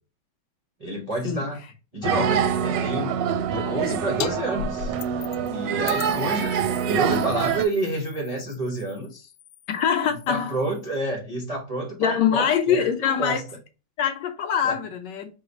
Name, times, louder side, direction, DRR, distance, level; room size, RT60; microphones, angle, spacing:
voice 1, 0.8-1.6 1.9-3.2 3.5-4.9 5.5-6.5 6.8-9.3 10.3-13.4 14.6-14.8, right 1 dB, 55° right, 0.4 m, -29 dB
sound 1, 2.0-7.6, right 8 dB, 75° right, 1.1 m, -25 dB
sound 2, 4.2-4.3 4.6-5.5 5.9-11.0, left 8 dB, 90° left, 1.4 m, -38 dB
voice 2, 9.7-10.6 12.0-13.4 14.0-15.3, left 8 dB, 70° left, 1.1 m, -23 dB
4.8 x 2.3 x 4.0 m
omnidirectional pair, 2.3 m